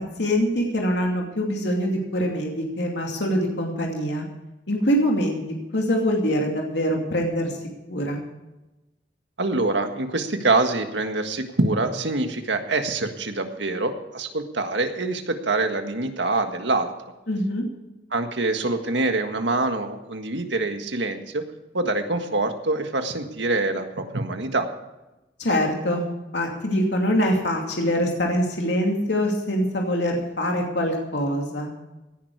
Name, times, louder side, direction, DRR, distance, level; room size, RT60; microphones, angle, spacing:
voice 1, 0.2-4.2 4.7-5.4 5.7-7.5 7.9-8.2 17.3-17.6 25.4-26.0 26.3-31.7, equal, 70° left, 1 dB, 2.6 m, -24 dB
voice 2, 9.4-16.9 18.1-21.4 21.7-24.7, right 2 dB, 75° right, 6 dB, 1.7 m, -25 dB
17.0 x 11.0 x 4.8 m, 1.0 s
head